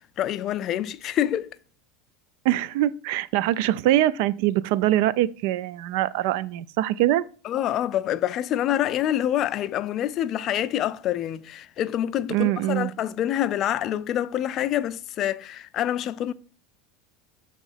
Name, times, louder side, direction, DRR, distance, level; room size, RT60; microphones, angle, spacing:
voice 1, 0.2-1.6 7.4-16.3, left 11 dB, 40° left, 0.4 m, -26 dB
voice 2, 2.4-7.2 12.3-12.9, right 14 dB, 70° right, 0.3 m, -23 dB
7.1 x 3.0 x 5.6 m
supercardioid pair, 125°, 0 cm